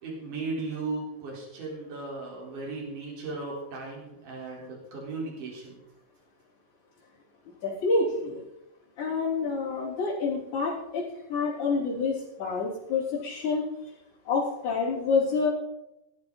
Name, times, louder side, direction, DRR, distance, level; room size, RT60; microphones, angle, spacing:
voice 1, 0.0-5.8, right 3 dB, 65° right, -3 dB, 5.4 m, -36 dB
voice 2, 7.6-8.4 9.0-13.7 14.2-15.5, left 4 dB, 60° left, -9 dB, 4.9 m, -28 dB
17.0 x 12.0 x 4.0 m, 0.90 s
omnidirectional pair, 3.9 m